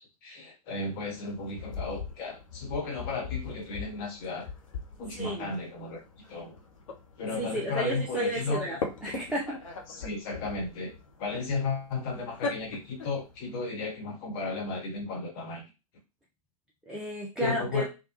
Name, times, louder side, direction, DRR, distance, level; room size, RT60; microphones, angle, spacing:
voice 1, 0.0-4.5 5.0-6.0 6.3-6.6 7.2-8.6 9.9-10.9 11.2-15.6 17.4-17.9, left 3 dB, 40° left, 1 dB, 1.2 m, -34 dB
sound 1, 0.9-13.5, left 4 dB, 60° left, 0.8 m, -41 dB
voice 2, 5.1-5.5 7.3-9.6 16.9-17.9, right 1 dB, 5° right, -4 dB, 0.4 m, -32 dB
3.3 x 2.2 x 2.9 m, 0.28 s
figure-of-eight pair, 100°, 19 cm